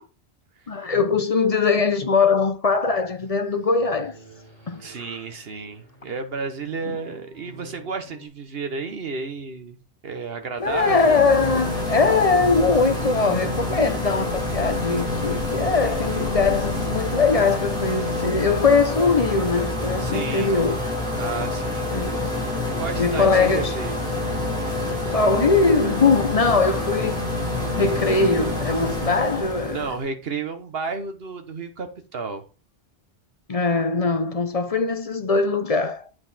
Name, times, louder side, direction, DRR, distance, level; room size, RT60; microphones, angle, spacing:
voice 1, 0.7-4.1 4.7-4.8 6.8-7.0 10.6-20.8 21.9-22.3 23.0-23.7 25.1-27.2 27.8-29.9 33.5-36.1, left 4 dB, 40° left, 0.8 m, -21 dB
sound 1, 2.7-8.3, right 1 dB, 45° right, 3.4 m, -49 dB
voice 2, 4.8-9.8 10.0-11.2 15.8-16.4 20.0-20.6 21.2-22.0 22.8-24.0 26.9-27.0 29.6-32.4, right 4 dB, 70° right, 1.4 m, -32 dB
sound 2, 10.6-30.0, left 2 dB, 5° left, 3.0 m, -27 dB
8.4 x 4.8 x 4.2 m
omnidirectional pair, 1.0 m